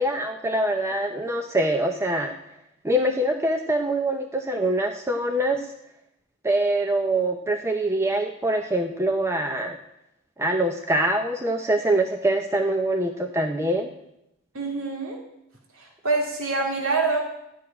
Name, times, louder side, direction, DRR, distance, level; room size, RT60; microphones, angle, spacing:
voice 1, 0.0-2.4 2.8-5.7 6.4-9.8 10.4-13.9, right 1 dB, 10° right, 4 dB, 0.7 m, -24 dB
voice 2, 14.5-15.2 15.8-17.2, right 3 dB, 65° right, 0 dB, 2.3 m, -25 dB
14.0 x 6.4 x 9.9 m, 0.83 s
head